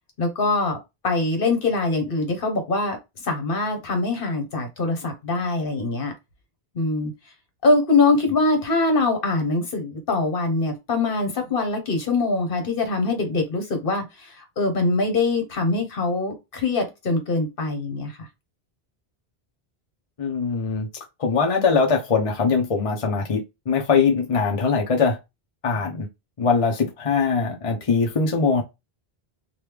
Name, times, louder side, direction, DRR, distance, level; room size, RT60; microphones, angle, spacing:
voice 1, 0.2-0.8 1.0-3.0 3.2-6.1 6.7-7.1 7.6-18.3, left 3 dB, 60° left, 1.1 m, -23 dB
voice 2, 20.2-20.9 21.2-25.2 25.6-26.1 26.4-28.6, left 5 dB, 40° left, 0.7 m, -21 dB
3.1 x 2.4 x 3.3 m
omnidirectional pair, 1.0 m